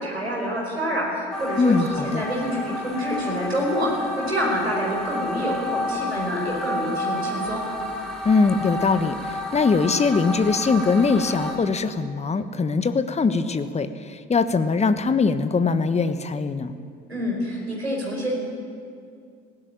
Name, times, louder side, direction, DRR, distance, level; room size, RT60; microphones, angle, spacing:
voice 1, 0.0-7.6 17.1-18.3, equal, 90° right, -2 dB, 5.1 m, -27 dB
sound 1, 1.3-11.5, left 1 dB, ahead, 6.6 m, -31 dB
voice 2, 1.6-2.2 8.2-16.7, left 4 dB, 20° left, 11 dB, 1.2 m, -22 dB
20.0 x 16.5 x 9.1 m, 2.3 s
figure-of-eight pair, 55°, 31 cm